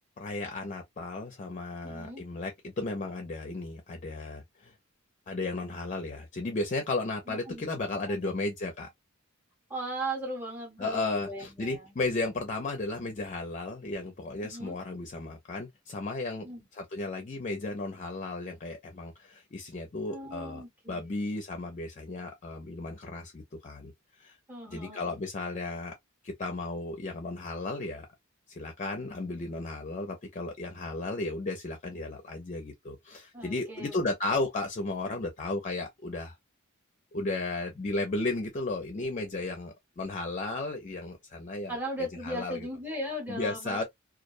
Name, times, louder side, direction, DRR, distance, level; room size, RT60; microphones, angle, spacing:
voice 1, 0.2-4.7 5.3-8.9 10.8-16.5 16.7-23.9 24.2-24.4 24.7-25.9 26.2-28.1 28.5-36.4 37.1-41.8 42.2-42.7 43.3-43.8, left 2 dB, 35° left, 0.4 m, -34 dB
voice 2, 1.8-2.2 7.3-8.4 9.7-12.0 14.4-14.8 16.4-16.6 20.1-21.2 24.5-25.2 33.3-34.0 41.7-43.8, right 1 dB, 10° right, 0.8 m, -38 dB
2.3 x 2.1 x 2.5 m
head